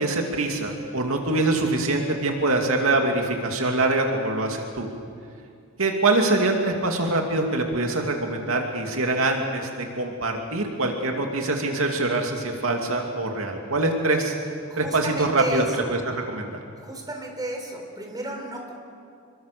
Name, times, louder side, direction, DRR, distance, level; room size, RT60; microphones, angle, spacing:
voice 1, 0.0-4.9 5.8-14.3 14.8-16.6, right 2 dB, 75° right, 2 dB, 2.6 m, -24 dB
voice 2, 14.7-15.9 16.8-18.7, right 1 dB, 20° right, 2 dB, 4.3 m, -33 dB
27.5 x 23.0 x 6.8 m, 2.3 s
head